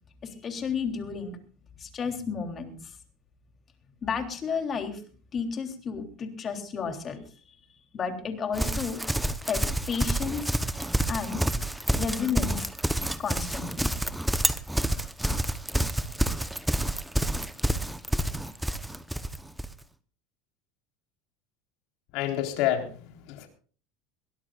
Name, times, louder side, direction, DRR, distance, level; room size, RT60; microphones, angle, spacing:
voice 1, 0.2-1.4 1.8-2.9 4.0-5.0 5.3-7.2 7.9-9.0 9.5-10.5 11.1-11.4 11.9-12.7 13.2-13.9, left 6 dB, 30° left, 5 dB, 3.4 m, -32 dB
Livestock farm animals working animals, 8.5-19.7, right 1 dB, 5° right, 0.9 m, -28 dB
voice 2, 22.1-23.5, left 11 dB, 65° left, 3 dB, 4.1 m, -29 dB
22.0 x 17.5 x 2.5 m, 0.41 s
supercardioid pair, 125°, 0 cm